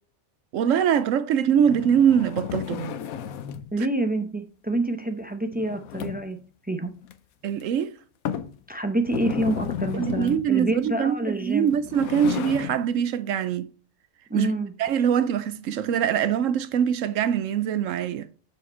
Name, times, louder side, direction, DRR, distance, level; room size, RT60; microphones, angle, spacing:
voice 1, 0.5-2.9 3.8-3.9 7.4-7.9 9.9-13.7 14.3-14.5 14.8-18.3, right 8 dB, 75° right, 0.9 m, -23 dB
sound 1, 1.6-3.7 5.5-6.4 7.0-7.1 7.6-7.7 8.3-8.6 9.0-10.5 11.6-12.8, left 9 dB, 90° left, 1.1 m, -32 dB
voice 2, 3.7-6.4 6.7-6.9 8.7-11.7 14.3-14.7, right 1 dB, 15° right, 0.4 m, -27 dB
6.8 x 5.0 x 4.2 m
omnidirectional pair, 1.4 m